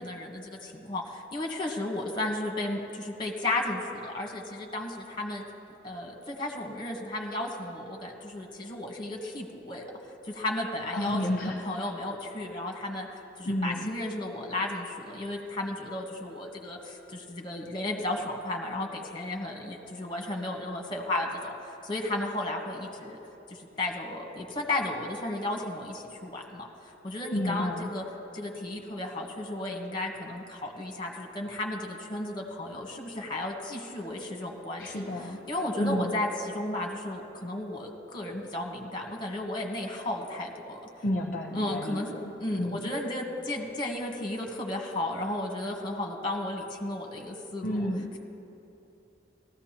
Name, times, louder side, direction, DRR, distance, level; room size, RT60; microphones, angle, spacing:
voice 1, 0.0-5.4 5.8-9.9 10.2-13.1 13.4-21.5 21.8-23.2 23.5-28.0 28.3-35.0 35.5-40.8 41.5-42.1 42.4-47.9, left 1 dB, 25° left, 1 dB, 1.3 m, -34 dB
voice 2, 10.9-11.9 13.4-13.9 27.3-27.9 34.8-35.4 35.8-36.2 41.0-42.3 42.6-42.9 47.6-48.1, left 1 dB, 45° left, 1 dB, 0.7 m, -31 dB
18.0 x 14.0 x 3.0 m, 2.9 s
head